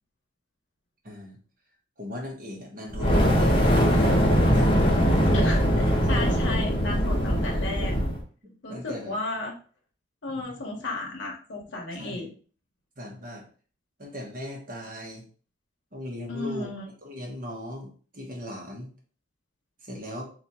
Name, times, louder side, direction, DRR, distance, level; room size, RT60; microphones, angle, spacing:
voice 1, 1.0-1.4 2.0-4.6 8.4-9.1 10.3-10.6 12.0-12.3 13.0-13.5 14.0-15.2 15.9-16.7 17.0-18.9 19.8-20.2, left 1 dB, 45° right, -1 dB, 1.1 m, -39 dB
Fire, 2.9-8.2, equal, 25° left, 0.8 m, -21 dB
voice 2, 5.3-7.9 8.6-9.5 10.2-12.3 16.3-16.9, left 2 dB, 75° left, 0 dB, 0.8 m, -33 dB
3.2 x 2.5 x 4.1 m, 0.42 s
head